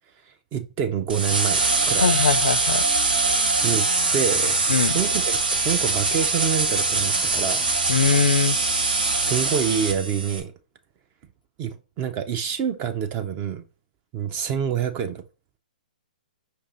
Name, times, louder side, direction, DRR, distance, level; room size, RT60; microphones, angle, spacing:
voice 1, 0.3-2.0 3.6-4.6 4.9-7.6 9.2-10.5 11.6-13.6 14.1-15.2, right 8 dB, 30° right, 0.4 m, -27 dB
sound 1, 1.1-10.4, right 3 dB, 80° right, 1.0 m, -23 dB
voice 2, 2.0-2.8 4.7-5.0 7.9-8.6, left 5 dB, 80° left, 0.4 m, -21 dB
5.3 x 2.7 x 3.7 m
hypercardioid pair, 125°, 5 cm